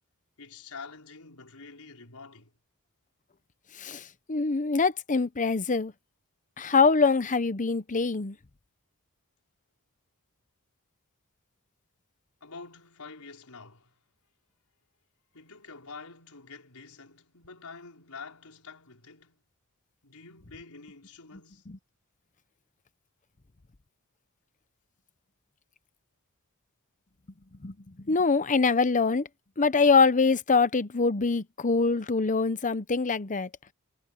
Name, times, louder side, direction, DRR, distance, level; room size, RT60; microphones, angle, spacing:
voice 1, 0.4-2.5 12.4-14.0 15.3-19.4 20.0-21.7, left 4 dB, 85° left, 4.6 m, -47 dB
voice 2, 3.8-5.9 6.6-8.4 27.6-29.3 29.6-33.5, left 4 dB, 35° left, 0.8 m, -24 dB
head